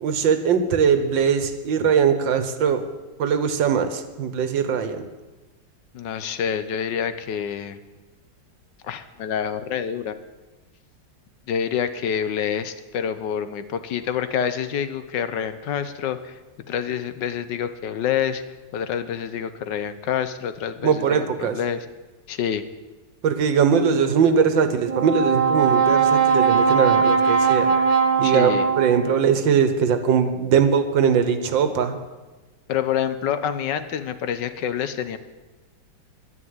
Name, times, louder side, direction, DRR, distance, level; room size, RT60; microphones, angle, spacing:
voice 1, 0.0-2.8 3.2-5.0 20.8-21.6 23.2-27.7 28.2-28.5 28.8-32.0, right 7 dB, 85° right, 10 dB, 1.9 m, -20 dB
voice 2, 5.9-7.8 8.8-10.1 11.5-16.4 16.7-18.4 18.7-21.8 22.3-22.7 28.2-28.7 32.7-35.2, left 8 dB, 75° left, 11 dB, 1.5 m, -27 dB
Brass instrument, 24.9-29.3, right 5 dB, 35° right, 0.6 m, -19 dB
11.0 x 9.9 x 9.6 m, 1.2 s
omnidirectional pair, 2.0 m